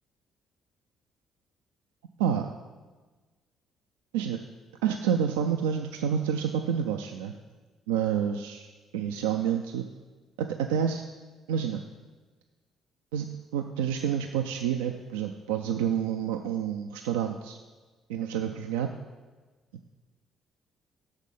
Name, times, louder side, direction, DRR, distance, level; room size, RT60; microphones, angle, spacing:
voice 1, 4.8-7.3 7.9-8.7 8.9-9.9 10.4-11.0 11.5-11.8 13.1-13.3 13.5-17.6 18.1-18.9, right 8 dB, 80° right, 5 dB, 0.3 m, -28 dB
8.0 x 6.4 x 5.5 m, 1.3 s
hypercardioid pair, 50°, 0 cm